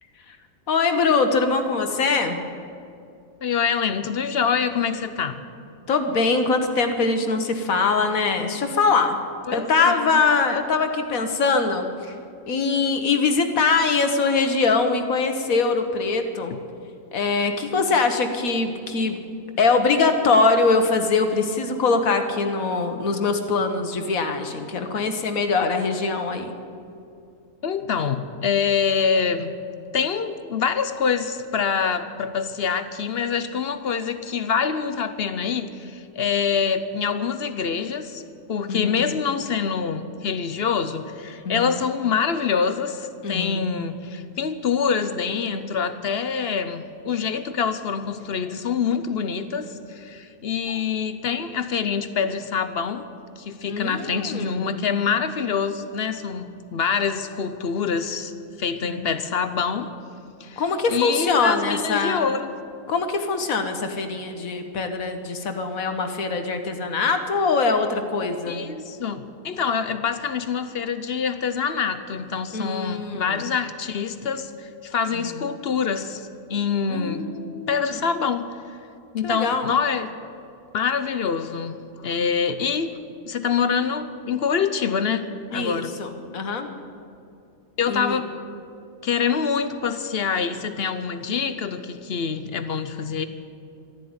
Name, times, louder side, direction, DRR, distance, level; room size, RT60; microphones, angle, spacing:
voice 1, 0.7-2.4 5.9-9.2 9.5-12.2 12.5-16.5 17.1-19.2 19.6-26.5 38.7-39.1 41.4-41.7 43.2-43.7 53.6-54.8 58.8-59.0 60.6-62.3 62.9-68.6 72.5-73.3 76.9-78.0 79.2-79.7 85.5-86.7 87.9-88.2, left 4 dB, 75° left, 7 dB, 1.6 m, -23 dB
voice 2, 3.4-5.4 9.5-10.2 16.5-16.6 27.6-29.6 29.9-38.2 38.5-53.1 53.4-59.9 60.4-60.6 60.9-62.5 68.5-77.3 77.7-78.8 79.1-80.1 80.7-83.0 83.2-85.9 87.8-88.3 89.0-93.3, left 6 dB, 55° left, 11 dB, 0.9 m, -25 dB
12.5 x 11.5 x 9.5 m, 2.5 s
omnidirectional pair, 1.5 m